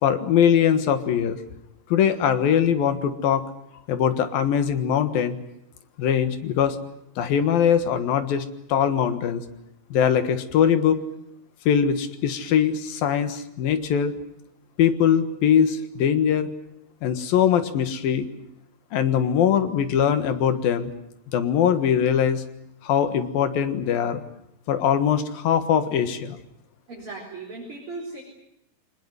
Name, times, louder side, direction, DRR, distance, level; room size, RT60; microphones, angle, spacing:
voice 1, 0.0-1.4 1.9-3.4 3.9-5.4 6.0-6.8 7.2-8.4 8.7-9.4 9.9-11.0 11.7-14.1 14.8-16.5 17.0-18.3 18.9-20.9 21.3-22.4 22.8-24.2 24.7-26.4, left 8 dB, 85° left, 10 dB, 3.3 m, -21 dB
voice 2, 26.9-28.2, right 3 dB, 35° right, -2 dB, 5.2 m, -37 dB
24.0 x 20.5 x 9.5 m, 0.79 s
omnidirectional pair, 4.1 m